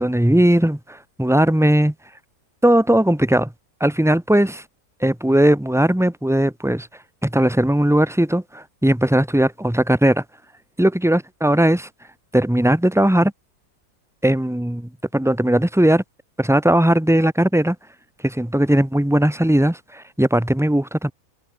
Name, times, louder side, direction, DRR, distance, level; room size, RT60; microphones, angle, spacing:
voice 1, 0.0-1.9 2.6-3.5 3.8-4.6 5.0-6.9 7.2-10.2 10.8-11.9 12.3-13.3 14.2-16.0 16.4-17.8 18.2-21.1, right 1 dB, ahead, 0.9 m, -18 dB
omnidirectional pair, 1.7 m